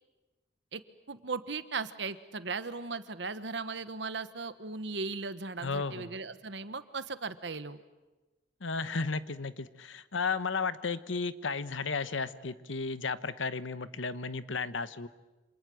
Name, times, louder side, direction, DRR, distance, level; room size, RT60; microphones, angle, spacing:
voice 1, 1.1-7.8, right 4 dB, 70° right, 12 dB, 1.2 m, -37 dB
voice 2, 5.6-6.2 8.6-15.1, left 4 dB, 90° left, 13 dB, 1.1 m, -34 dB
28.0 x 26.5 x 7.8 m, 1.1 s
head